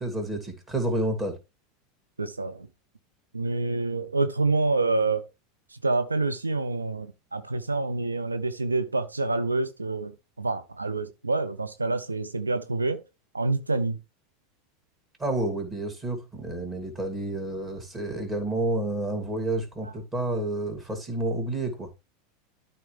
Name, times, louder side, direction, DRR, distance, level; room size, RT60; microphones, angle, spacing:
voice 1, 0.0-1.4 15.2-21.9, right 1 dB, 20° right, 2.7 m, -30 dB
voice 2, 2.2-2.7 3.3-5.3 5.7-13.0 13.3-14.0 19.8-19.9, right 3 dB, 85° right, 0.5 m, -27 dB
12.5 x 4.3 x 3.3 m
figure-of-eight pair, 80°, 0 cm